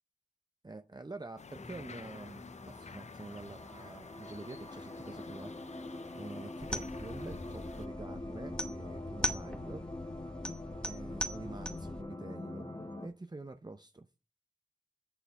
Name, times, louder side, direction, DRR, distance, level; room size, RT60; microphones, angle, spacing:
voice 1, 0.6-5.5 6.1-9.9 10.8-12.7 13.0-14.1, right 2 dB, 30° right, 7 dB, 0.6 m, -47 dB
sound 1, 1.4-7.9, left 5 dB, 55° left, 0.4 m, -51 dB
sound 2, 1.5-13.1, left 2 dB, 35° left, 1.4 m, -44 dB
sound 3, 6.6-12.0, equal, 5° left, 0.9 m, -40 dB
7.8 x 6.8 x 4.7 m, 0.31 s
wide cardioid pair, 55°, 14 cm